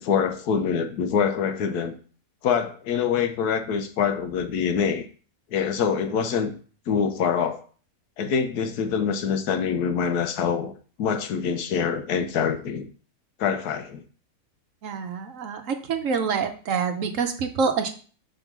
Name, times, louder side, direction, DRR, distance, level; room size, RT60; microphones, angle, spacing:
voice 1, 0.0-1.9 2.4-5.0 5.5-6.5 6.9-7.6 8.2-12.9 13.4-14.0, left 7 dB, 80° left, 8 dB, 1.3 m, -25 dB
voice 2, 14.8-17.9, right 5 dB, 60° right, 6 dB, 1.0 m, -26 dB
5.3 x 3.7 x 5.9 m, 0.40 s
omnidirectional pair, 1.7 m